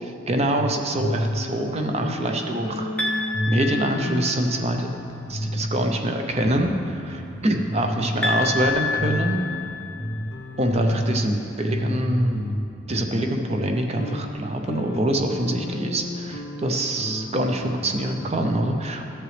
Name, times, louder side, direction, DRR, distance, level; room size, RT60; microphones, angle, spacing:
voice 1, 0.3-4.9 5.3-9.4 10.6-12.5 12.9-19.0, right 1 dB, 35° right, 4 dB, 0.6 m, -25 dB
sound 1, 0.5-0.7 1.0-11.4 11.6-18.7, equal, 70° left, 1.5 m, -31 dB
sound 2, 3.0-4.6 8.2-10.2, left 3 dB, 5° left, 0.8 m, -28 dB
12.5 x 7.6 x 3.3 m, 2.6 s
head